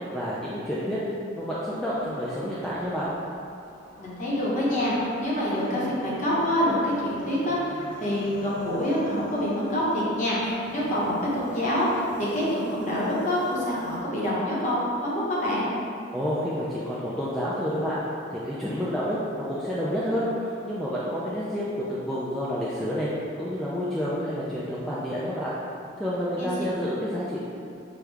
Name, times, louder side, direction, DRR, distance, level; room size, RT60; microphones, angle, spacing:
voice 1, 0.1-1.0 1.3-3.1 16.1-18.0 18.3-23.1 23.4-25.5 26.0-27.5, equal, ahead, -9 dB, 0.3 m, -29 dB
sound 1, 1.9-14.0, equal, 65° right, 0.9 m, -46 dB
voice 2, 4.0-15.7 26.4-26.5, equal, 35° left, -7 dB, 1.0 m, -26 dB
6.1 x 2.3 x 3.3 m, 2.6 s
head